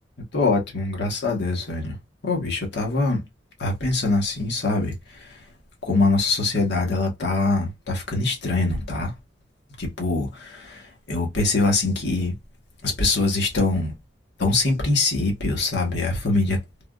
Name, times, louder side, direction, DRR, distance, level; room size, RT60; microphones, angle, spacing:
voice 1, 0.3-2.0 2.2-3.2 3.6-5.4 5.8-9.1 9.8-12.3 12.8-13.9 14.4-16.6, left 3 dB, 65° left, 1.1 m, -23 dB
3.4 x 2.3 x 2.3 m
head